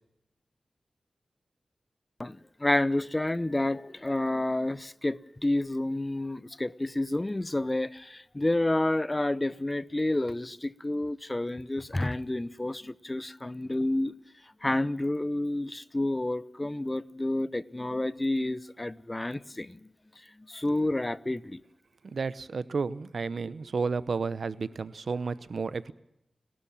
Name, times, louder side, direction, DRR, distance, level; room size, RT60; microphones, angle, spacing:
voice 1, 2.2-14.1 14.6-19.9 20.5-21.6, left 1 dB, 25° left, 0.8 m, -29 dB
voice 2, 22.1-25.9, right 4 dB, 75° right, 0.8 m, -32 dB
29.5 x 13.0 x 7.3 m
cardioid pair, 50°, 0 cm